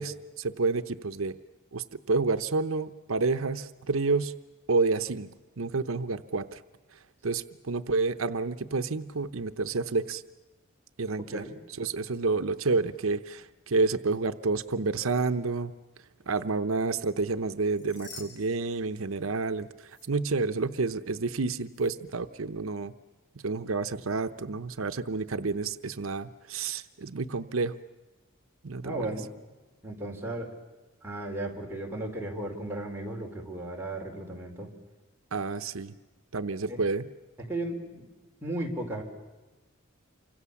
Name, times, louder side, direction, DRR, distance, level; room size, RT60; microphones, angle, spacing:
voice 1, 0.0-1.4 1.7-4.3 4.7-5.3 5.6-6.6 7.2-10.2 11.0-11.4 11.8-15.7 16.3-19.7 20.1-22.9 23.4-27.7 28.6-29.1 35.3-35.9 36.3-37.1, right 3 dB, 80° right, 10 dB, 0.8 m, -29 dB
sound 1, 17.5-19.5 19.8-20.1 21.7-21.9, left 3 dB, 60° left, 6.4 m, -50 dB
voice 2, 28.8-29.3 29.8-30.6 31.0-34.7 36.7-36.8 37.5-38.1 38.4-39.0, right 1 dB, 10° right, -1 dB, 4.6 m, -35 dB
28.5 x 25.0 x 7.1 m, 1.2 s
head